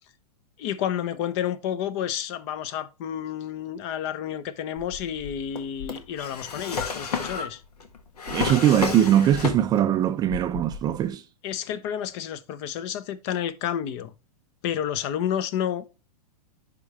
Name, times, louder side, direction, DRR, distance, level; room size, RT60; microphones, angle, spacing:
voice 1, 0.6-7.6 11.4-14.1 14.6-15.9, left 9 dB, 45° left, 0.7 m, -30 dB
Drawer open or close, 4.8-10.0 10.3-11.1, left 5 dB, 80° left, 1.5 m, -32 dB
voice 2, 8.3-11.2, right 11 dB, 20° right, 0.4 m, -21 dB
10.5 x 3.7 x 3.2 m
hypercardioid pair, 125°, 20 cm